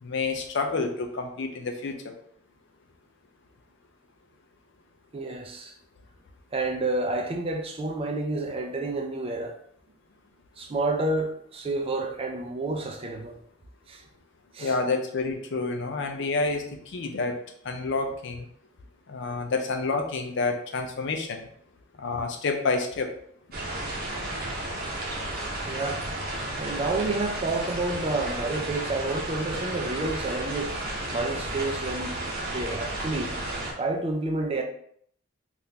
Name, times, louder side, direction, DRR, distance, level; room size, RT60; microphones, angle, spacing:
voice 1, 0.0-2.1 14.6-17.4 17.6-18.5 19.1-21.5 22.0-23.1, left 3 dB, 65° left, 0.5 m, -29 dB
voice 2, 5.1-5.7 6.5-9.6 10.6-13.4 13.9-14.1 14.5-14.7 25.7-26.1 26.6-30.8 31.1-33.3 33.7-34.6, right 2 dB, 30° right, 0.4 m, -29 dB
sound 1, 23.5-33.7, right 1 dB, 50° right, 0.8 m, -33 dB
3.6 x 2.5 x 2.8 m
head